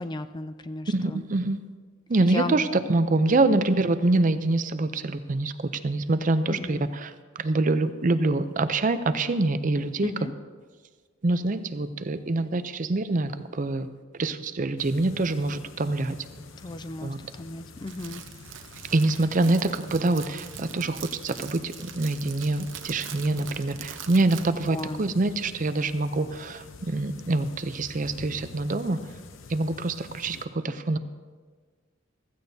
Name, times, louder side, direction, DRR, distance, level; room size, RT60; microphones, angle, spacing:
voice 1, 0.0-1.2 2.2-2.6 3.5-3.6 6.5-6.9 10.0-10.3 16.6-18.2 24.7-25.1, left 2 dB, 20° left, 11 dB, 0.3 m, -35 dB
voice 2, 0.9-1.6 2.1-7.1 7.4-10.1 11.2-13.9 14.2-16.2 17.0-17.2 18.9-29.0 29.5-31.0, right 2 dB, 40° right, 11 dB, 0.5 m, -25 dB
sound 1, 14.8-30.5, left 3 dB, 75° left, 0.7 m, -47 dB
Crackle, 17.8-24.9, right 9 dB, 70° right, 0.8 m, -43 dB
15.5 x 14.5 x 2.8 m, 1.5 s
head